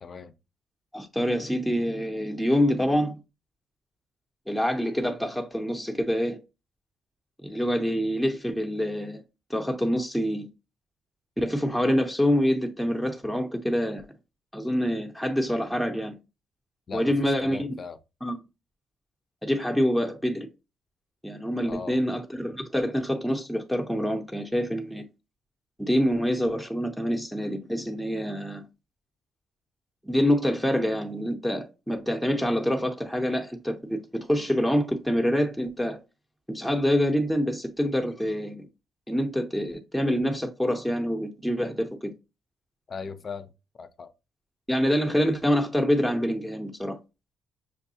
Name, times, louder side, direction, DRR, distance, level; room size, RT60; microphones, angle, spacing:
voice 1, 0.0-0.3 16.9-18.0 21.6-22.0 42.9-43.5 43.8-44.1, left 5 dB, 45° left, 0.4 m, -38 dB
voice 2, 0.9-3.2 4.5-6.4 7.4-9.2 9.5-10.5 11.4-14.0 14.5-16.1 16.9-17.7 18.2-18.4 19.4-20.5 21.2-25.0 25.8-28.7 30.0-36.0 36.5-38.7 39.1-42.1 44.7-47.0, equal, ahead, 0.6 m, -26 dB
6.0 x 2.3 x 2.7 m
cardioid pair, 90°, 0 cm